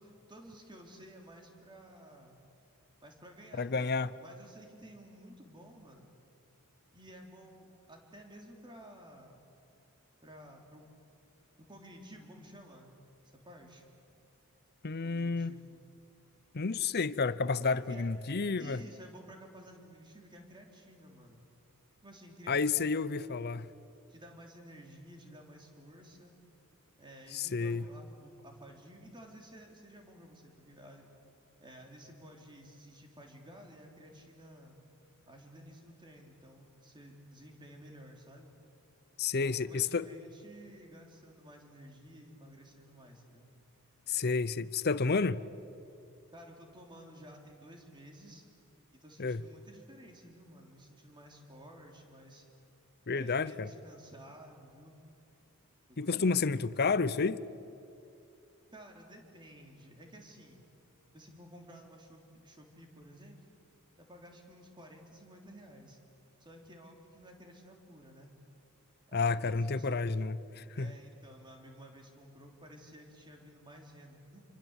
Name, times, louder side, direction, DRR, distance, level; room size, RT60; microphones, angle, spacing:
voice 1, 0.0-2.4 3.0-6.1 6.9-9.4 10.2-10.9 11.6-13.1 13.5-13.8 15.0-15.8 17.6-18.1 18.6-21.4 22.0-23.4 24.1-26.4 27.0-31.1 31.6-34.8 35.3-38.5 39.4-43.5 46.3-48.5 49.0-52.4 53.1-55.0 55.9-56.6 58.7-60.6 61.1-63.5 64.0-66.0 66.4-68.3 69.1-70.0 70.7-74.4, equal, 20° right, 3.5 m, -53 dB
voice 2, 3.5-4.1 14.8-15.6 16.5-18.8 22.5-23.7 27.3-27.9 39.2-40.1 44.1-45.4 49.2-49.4 53.1-53.7 56.0-57.4 69.1-70.9, left 4 dB, 45° left, 0.7 m, -30 dB
27.0 x 24.5 x 8.2 m
head